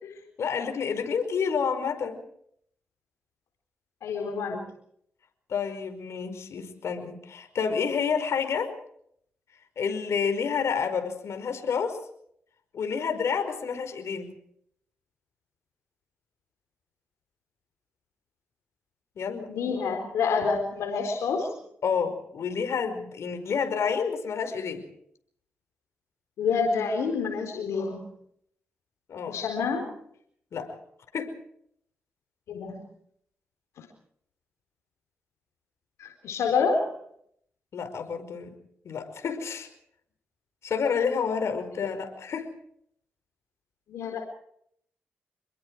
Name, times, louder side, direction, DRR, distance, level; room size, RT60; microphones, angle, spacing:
voice 1, 0.4-2.2 5.5-8.7 9.8-12.0 12.7-14.4 19.1-19.5 21.8-24.9 29.1-29.4 30.5-30.7 31.1-31.3 37.7-38.6 38.8-39.7 40.6-42.5, left 6 dB, 75° left, 7 dB, 5.1 m, -29 dB
voice 2, 4.0-4.6 19.5-21.5 26.4-28.0 29.3-29.9 32.5-32.8 33.8-33.9 36.0-36.9 41.8-41.9 43.9-44.2, left 5 dB, 90° left, 3 dB, 4.2 m, -28 dB
27.5 x 21.5 x 4.8 m, 0.69 s
cardioid pair, 60°, 5 cm